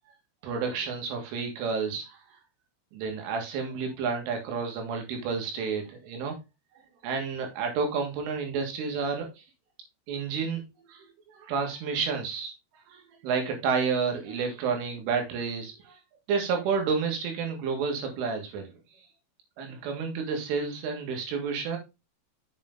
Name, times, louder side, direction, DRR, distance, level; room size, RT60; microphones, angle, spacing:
voice 1, 0.4-2.2 2.9-6.3 7.0-9.4 10.1-10.6 10.9-12.5 12.9-16.0 16.3-18.7 19.6-21.8, right 5 dB, 75° right, 4 dB, 4.3 m, -30 dB
7.9 x 6.6 x 3.8 m, 0.26 s
omnidirectional pair, 5.9 m